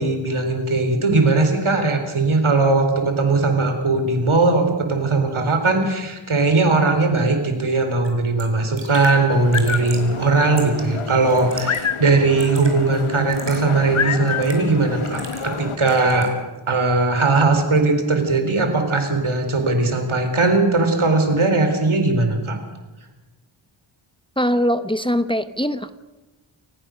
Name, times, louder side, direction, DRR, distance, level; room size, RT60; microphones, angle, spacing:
voice 1, 0.0-16.3 16.7-22.6, right 3 dB, 80° right, 6 dB, 4.0 m, -19 dB
Raindrop / Drip, 8.0-8.1 8.4-8.5 8.8-9.2 9.5-10.1 10.6-10.9 11.3-11.9 12.1-12.7 13.3-13.6 14.3-14.7 15.1-15.6 15.9-16.3, right 3 dB, 60° right, 5.5 m, -36 dB
sound 1, 9.3-15.8, left 6 dB, 80° left, 1.3 m, -28 dB
voice 2, 24.4-25.9, equal, 10° left, 11 dB, 1.0 m, -21 dB
29.0 x 15.5 x 6.4 m, 1.1 s
wide cardioid pair, 50°, 48 cm